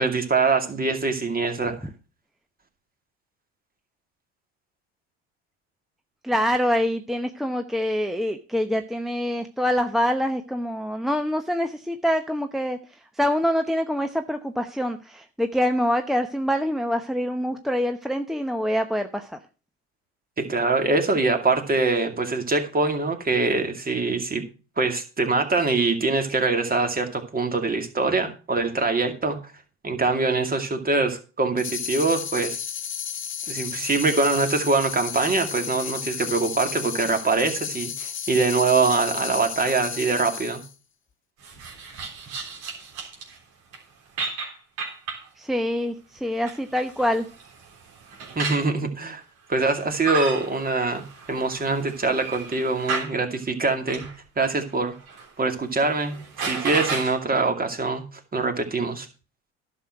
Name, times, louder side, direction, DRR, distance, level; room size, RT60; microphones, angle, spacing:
voice 1, 0.0-1.7 20.4-24.4 24.8-29.4 29.8-32.6 33.5-40.6 48.4-49.2 49.5-54.1 54.4-54.9 55.4-58.0 58.3-59.1, right 3 dB, 30° right, 5 dB, 2.4 m, -24 dB
voice 2, 6.2-19.4 45.4-47.3, equal, ahead, 6 dB, 0.8 m, -25 dB
sound 1, 31.6-40.7, left 8 dB, 40° left, 1.3 m, -33 dB
sound 2, 41.4-43.4 43.7-43.8 44.2-45.3 46.2-48.7 49.7-53.1 53.9-54.1 54.7-55.3 55.6-55.7 56.0-57.1, right 5 dB, 75° right, 3.6 m, -33 dB
11.0 x 6.5 x 6.0 m, 0.34 s
supercardioid pair, 75°, 31 cm